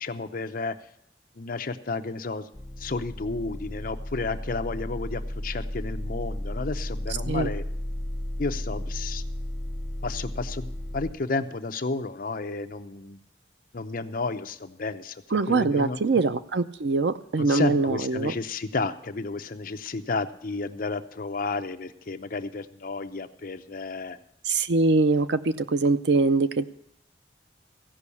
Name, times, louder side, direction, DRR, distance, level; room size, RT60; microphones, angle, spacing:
voice 1, 0.0-0.8 1.4-2.5 2.8-7.6 8.4-9.2 10.0-13.2 13.7-16.0 17.4-24.2, left 3 dB, 55° left, 8 dB, 0.7 m, -32 dB
sound 1, 2.5-11.1, left 1 dB, 5° left, 1.0 m, -34 dB
voice 2, 15.3-18.3 24.4-26.6, right 3 dB, 75° right, 12 dB, 0.6 m, -23 dB
15.5 x 5.5 x 8.4 m, 0.71 s
head